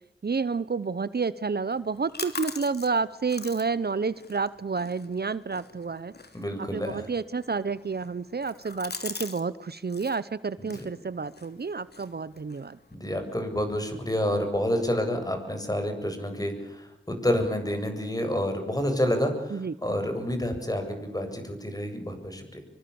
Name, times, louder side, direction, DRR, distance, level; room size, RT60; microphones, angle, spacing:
voice 1, 0.2-6.1 6.6-12.8 19.5-19.8, right 4 dB, 55° right, 16 dB, 0.9 m, -30 dB
sound 1, 1.7-9.4 9.7-10.2 10.6-12.9, left 3 dB, 55° left, 3.2 m, -43 dB
voice 2, 6.3-7.1 10.6-10.9 12.9-22.6, left 1 dB, 20° left, 5 dB, 7.9 m, -29 dB
25.5 x 24.5 x 7.2 m, 0.85 s
wide cardioid pair, 85°, 19 cm